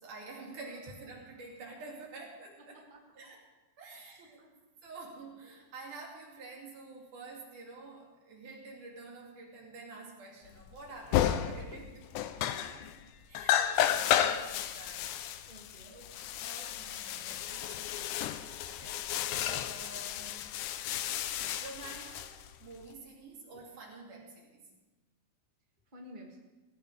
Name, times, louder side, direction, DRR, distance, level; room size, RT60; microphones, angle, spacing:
voice 1, 0.0-2.8 3.2-3.5 3.8-4.4 4.8-12.1 12.6-12.8 13.3-15.5 15.8-19.0 19.5-20.4 21.6-24.7, right 3 dB, 80° right, -1 dB, 4.1 m, -49 dB
voice 2, 2.7-3.2 3.9-4.5 12.3-13.0 15.5-15.9 17.6-17.7 23.5-23.6 25.9-26.4, equal, 15° right, -1 dB, 2.1 m, -54 dB
sound 1, 10.7-10.8 11.1-11.8 12.1-13.0 13.3-22.8, left 11 dB, 85° left, 2.1 m, -32 dB
18.5 x 16.0 x 3.4 m, 1.1 s
omnidirectional pair, 3.5 m